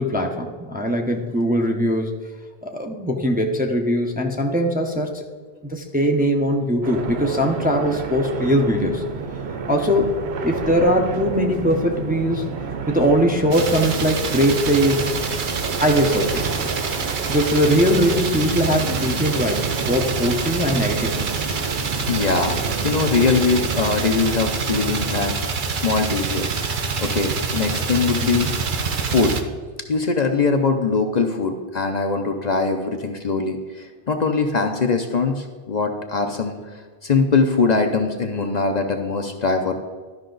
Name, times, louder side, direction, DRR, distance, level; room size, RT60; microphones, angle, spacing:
voice 1, 0.0-2.1 2.6-5.2 5.6-9.0 9.7-12.4 12.9-15.0 15.8-16.7 17.3-21.5 28.2-28.5, equal, 10° right, 2 dB, 0.6 m, -21 dB
sound 1, 6.8-25.4, right 5 dB, 90° right, 1.1 m, -30 dB
sound 2, 13.5-29.4, right 5 dB, 55° right, 0.8 m, -26 dB
voice 2, 21.9-25.4 25.8-26.5 27.0-28.5 29.0-29.4 29.9-36.6 37.0-39.7, left 4 dB, 50° left, 4 dB, 0.7 m, -22 dB
12.0 x 5.6 x 3.9 m, 1.5 s
omnidirectional pair, 1.1 m